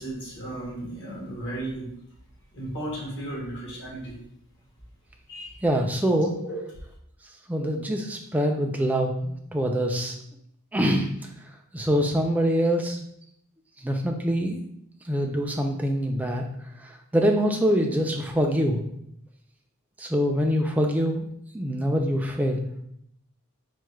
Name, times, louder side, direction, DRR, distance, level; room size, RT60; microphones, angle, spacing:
voice 1, 0.0-1.9 2.5-4.2 5.3-5.6 6.4-6.6, right 1 dB, 50° left, -4 dB, 1.2 m, -35 dB
voice 2, 5.6-6.4 7.5-10.1 10.7-11.1 11.7-13.0 13.8-14.7 15.0-16.4 17.1-18.8 20.0-21.3 21.5-22.7, equal, 5° right, 2 dB, 0.3 m, -24 dB
4.6 x 2.2 x 3.1 m, 0.71 s
head